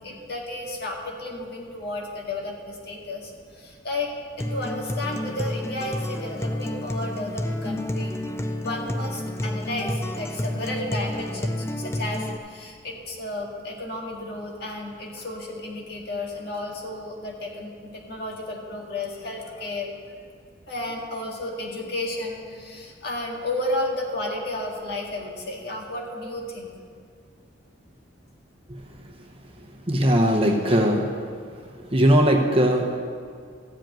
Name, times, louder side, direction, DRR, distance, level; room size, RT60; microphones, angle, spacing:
voice 1, 0.0-3.3 3.6-4.1 4.4-8.2 8.6-19.9 20.7-26.7, left 2 dB, 55° left, -2 dB, 2.0 m, -32 dB
Acoustic guitar, 4.4-12.4, left 1 dB, 15° left, 0.4 m, -30 dB
voice 2, 29.9-31.2 31.9-33.0, equal, 30° right, 2 dB, 0.9 m, -19 dB
14.5 x 5.3 x 9.0 m, 2.2 s
head